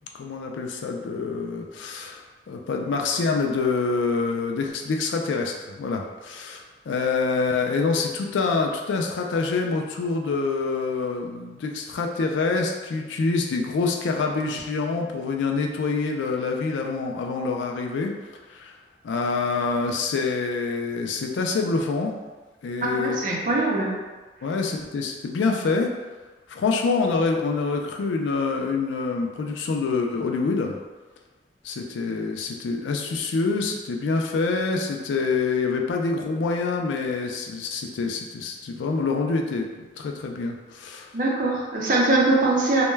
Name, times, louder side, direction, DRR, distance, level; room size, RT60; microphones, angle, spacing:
voice 1, 0.1-2.2 2.5-18.1 18.5-18.7 19.0-22.1 22.6-23.2 24.4-25.9 26.5-30.8 31.6-41.1, left 4 dB, 90° left, 2 dB, 0.3 m, -26 dB
voice 2, 22.8-23.9 41.1-42.8, right 2 dB, 45° right, -3 dB, 0.5 m, -22 dB
2.2 x 2.1 x 3.1 m, 1.3 s
head